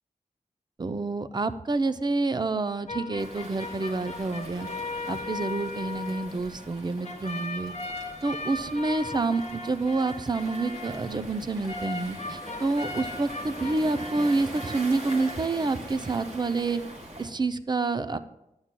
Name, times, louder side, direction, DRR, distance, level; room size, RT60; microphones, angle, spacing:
voice 1, 0.8-4.7 5.1-7.7 8.2-16.8 17.2-18.2, right 3 dB, 30° right, 11 dB, 0.5 m, -28 dB
sound 1, 2.9-15.4, left 2 dB, 55° left, 0.8 m, -38 dB
Waves surf, 3.2-17.3, right 1 dB, 55° right, 1.5 m, -43 dB
11.0 x 8.7 x 2.2 m, 0.89 s
wide cardioid pair, 65°, 14 cm